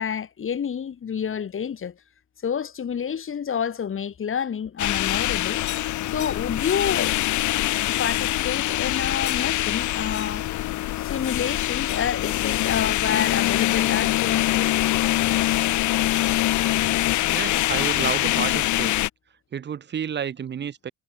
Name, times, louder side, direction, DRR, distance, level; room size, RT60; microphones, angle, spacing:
voice 1, 0.0-2.0 2.4-5.6 6.1-7.2 8.0-10.5 11.0-14.8, left 7 dB, 45° left, 1.7 m, -28 dB
sound 1, 4.8-19.1, left 15 dB, 75° left, 0.8 m, -24 dB
voice 2, 17.3-18.9 19.5-20.9, right 8 dB, 35° right, 0.7 m, -30 dB
cardioid pair, 90°, 30 cm